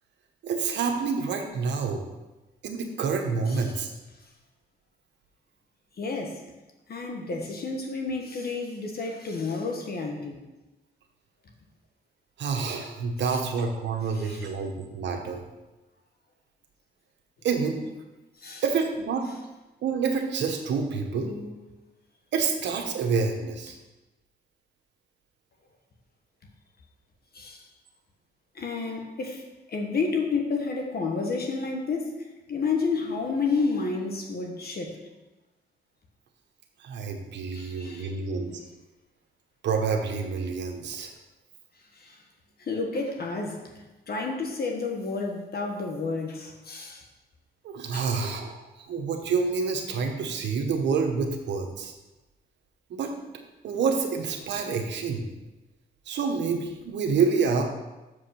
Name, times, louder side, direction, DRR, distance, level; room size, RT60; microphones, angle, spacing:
voice 1, 0.4-2.0 2.6-3.9 12.4-15.4 17.4-17.9 18.6-19.3 19.8-21.4 22.3-23.8 36.8-38.6 39.6-41.1 47.6-51.9 52.9-53.1 53.6-55.3 56.1-57.6, right 5 dB, 90° right, 4 dB, 1.0 m, -28 dB
voice 2, 3.5-3.8 6.0-6.4 6.9-10.4 13.2-13.4 14.1-14.5 18.4-18.6 21.1-21.6 27.3-27.6 28.5-35.0 37.5-38.1 41.9-42.2 42.6-47.0 47.9-48.1, left 4 dB, 60° left, 2 dB, 1.3 m, -31 dB
7.0 x 4.9 x 5.7 m, 1.1 s
cardioid pair, 75°, 18 cm